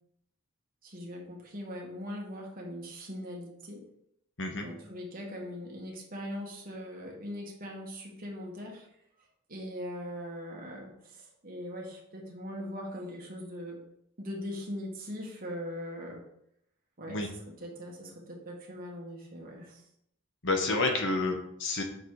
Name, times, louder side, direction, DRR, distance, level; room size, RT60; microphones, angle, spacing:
voice 1, 0.8-3.8 4.5-8.9 9.5-13.8 14.2-16.2 17.0-17.3 17.6-19.9, equal, 40° right, -1 dB, 1.6 m, -40 dB
voice 2, 20.4-21.8, left 2 dB, 60° left, 3 dB, 1.1 m, -29 dB
6.5 x 4.1 x 4.8 m, 0.76 s
head